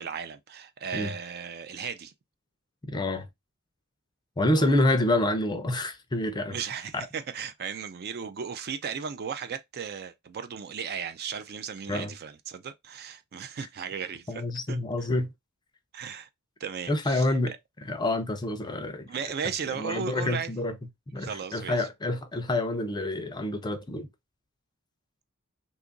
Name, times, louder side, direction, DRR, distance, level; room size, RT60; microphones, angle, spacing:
voice 1, 0.0-2.1 4.6-4.8 6.5-15.1 15.9-16.3 16.6-17.6 19.1-20.6 21.2-21.9, right 6 dB, 45° right, 0.4 m, -36 dB
voice 2, 2.9-3.3 4.4-6.6 6.9-7.1 11.9-12.1 14.3-15.3 16.9-17.5 17.9-19.1 19.8-20.7 21.1-24.1, left 1 dB, 20° left, 0.5 m, -27 dB
2.9 x 2.4 x 3.7 m
head